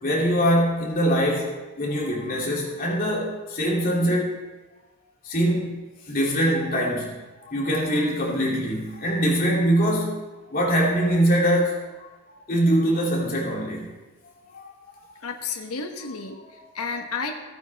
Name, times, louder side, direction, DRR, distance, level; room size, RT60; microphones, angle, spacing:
voice 1, 0.0-4.4 5.2-5.8 6.1-10.2 10.5-13.9 14.5-15.1 16.4-16.6, equal, 40° left, -4 dB, 2.8 m, -23 dB
voice 2, 15.2-16.4 16.7-17.4, left 4 dB, 85° left, 3 dB, 1.2 m, -31 dB
15.5 x 9.1 x 3.5 m, 1.2 s
head